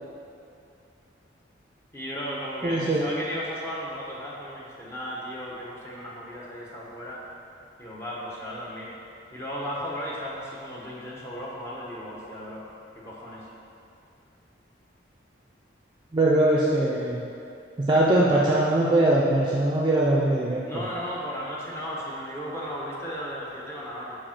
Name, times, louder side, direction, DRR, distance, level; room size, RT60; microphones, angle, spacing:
voice 1, 1.9-7.4 7.8-8.9 9.3-12.7 12.9-13.5 20.6-24.2, equal, 15° left, -6 dB, 1.0 m, -35 dB
voice 2, 2.6-3.1 16.1-17.2 17.8-20.8, right 1 dB, 25° right, -5 dB, 0.5 m, -21 dB
5.1 x 4.4 x 5.9 m, 2.6 s
head